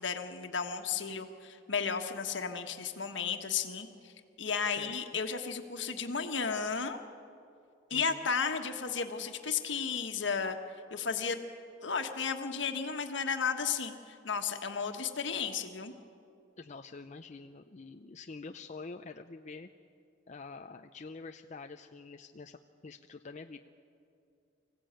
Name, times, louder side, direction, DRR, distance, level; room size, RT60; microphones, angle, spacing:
voice 1, 0.0-4.1 4.4-7.0 7.9-10.6 10.9-11.4 11.8-15.9, left 6 dB, 70° left, 6 dB, 1.5 m, -34 dB
voice 2, 7.9-8.3 16.6-19.7 20.3-22.6 22.8-23.6, left 4 dB, 40° left, 6 dB, 0.6 m, -46 dB
24.5 x 16.0 x 9.0 m, 2.5 s
head